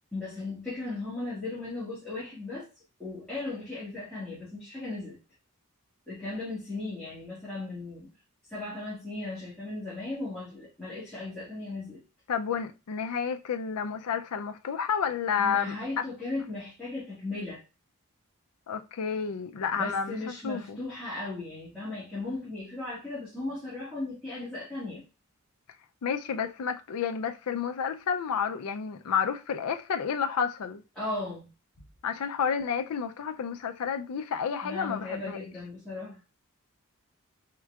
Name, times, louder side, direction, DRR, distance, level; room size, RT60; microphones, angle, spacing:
voice 1, 0.1-2.7 3.0-5.2 6.1-8.1 8.5-12.0 15.4-17.6 19.7-25.0 31.0-31.5 34.6-36.2, left 2 dB, 5° left, 1.9 m, -36 dB
voice 2, 12.3-16.0 18.7-20.2 20.4-20.8 26.0-30.8 32.0-35.4, left 7 dB, 85° left, 0.4 m, -30 dB
4.4 x 3.7 x 2.4 m
head